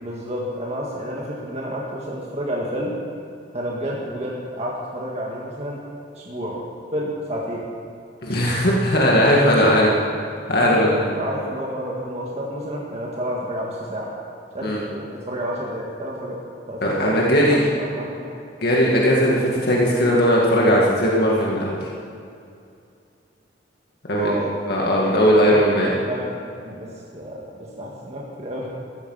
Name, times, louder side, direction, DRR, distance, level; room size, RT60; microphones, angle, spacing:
voice 1, 0.0-3.0 3.5-5.8 6.2-6.7 6.9-7.7 9.1-9.8 10.6-14.1 14.5-18.4 24.1-24.6 25.0-25.2 25.5-26.4 26.6-28.7, equal, 35° right, -3 dB, 1.8 m, -30 dB
voice 2, 8.2-9.9 10.5-11.0 14.6-14.8 16.8-17.6 18.6-21.8 24.1-24.4 24.7-25.9, equal, 60° left, -4 dB, 2.1 m, -18 dB
14.5 x 14.0 x 5.7 m, 2.5 s
head